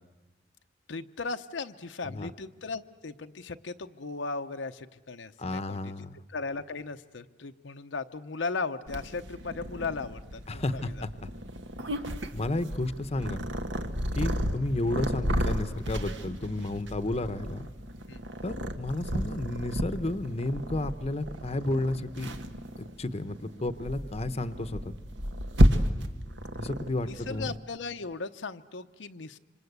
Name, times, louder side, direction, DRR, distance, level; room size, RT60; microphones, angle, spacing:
voice 1, 0.9-10.8 18.1-18.2 27.0-29.4, left 4 dB, 85° left, 8 dB, 0.8 m, -37 dB
voice 2, 5.4-6.2 10.5-11.1 12.3-13.5 14.1-17.6 18.4-24.8 26.6-27.6, left 2 dB, 35° left, 11 dB, 0.8 m, -32 dB
Purr, 8.9-27.6, equal, 80° right, 1.7 m, -32 dB
26.5 x 26.0 x 8.1 m, 1.2 s
head